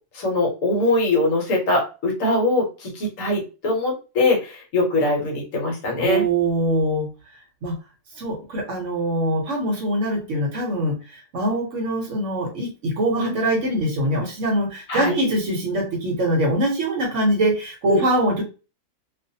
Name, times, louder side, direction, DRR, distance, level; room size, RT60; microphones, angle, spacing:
voice 1, 0.1-6.2 13.2-13.4 14.9-15.1 17.9-18.0, left 2 dB, 65° left, 1 dB, 1.1 m, -22 dB
voice 2, 6.0-7.1 7.6-7.8 8.2-18.4, right 1 dB, 60° right, 0 dB, 1.0 m, -23 dB
2.5 x 2.3 x 2.6 m, 0.32 s
omnidirectional pair, 1.6 m